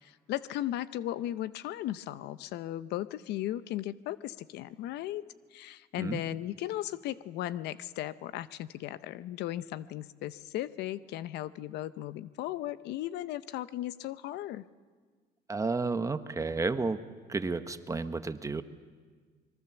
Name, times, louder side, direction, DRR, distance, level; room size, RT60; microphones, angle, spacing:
voice 1, 0.0-5.2 5.5-14.6, left 13 dB, 80° left, 15 dB, 0.7 m, -36 dB
voice 2, 15.5-17.0 17.3-18.6, right 3 dB, 20° right, 10 dB, 1.0 m, -31 dB
25.0 x 22.0 x 7.0 m, 1.5 s
cardioid pair, 110°, 17 cm